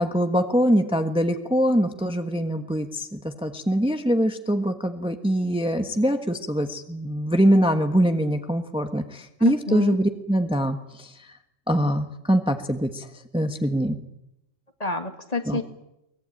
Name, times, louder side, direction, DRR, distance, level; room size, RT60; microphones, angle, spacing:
voice 1, 0.0-11.4 11.7-13.1 13.3-14.0 15.5-15.6, equal, 5° right, 6 dB, 1.2 m, -23 dB
voice 2, 9.4-10.0 14.8-15.6, left 3 dB, 30° left, 7 dB, 1.8 m, -28 dB
23.5 x 20.0 x 8.9 m, 0.86 s
omnidirectional pair, 1.3 m